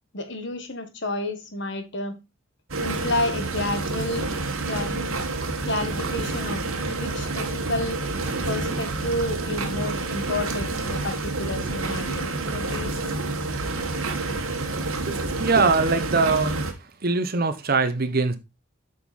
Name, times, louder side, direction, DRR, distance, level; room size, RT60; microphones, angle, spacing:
voice 1, 0.1-2.1 2.8-4.3 4.7-5.1 5.6-8.0 8.5-13.1, left 2 dB, 55° left, 1.5 m, -30 dB
sound 1, 2.7-16.7, right 3 dB, 75° right, 1.5 m, -28 dB
voice 2, 15.1-16.7 17.0-18.4, right 4 dB, 45° right, 1.0 m, -22 dB
7.8 x 5.5 x 4.2 m
head